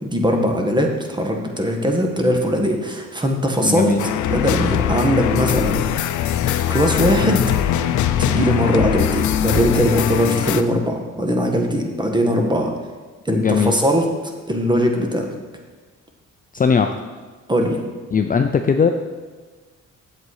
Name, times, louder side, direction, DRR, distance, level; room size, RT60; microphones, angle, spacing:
voice 1, 0.0-3.9 4.3-5.8 6.7-7.4 8.2-12.7 13.2-15.3 17.5-17.8, equal, 15° right, 2 dB, 1.5 m, -20 dB
voice 2, 3.6-4.0 7.2-7.4 13.3-13.7 16.5-16.9 18.1-18.9, left 6 dB, 30° left, 6 dB, 0.5 m, -19 dB
sound 1, 4.0-10.6, left 10 dB, 75° left, 0.6 m, -21 dB
8.3 x 7.6 x 4.9 m, 1.4 s
cardioid pair, 90°, 30 cm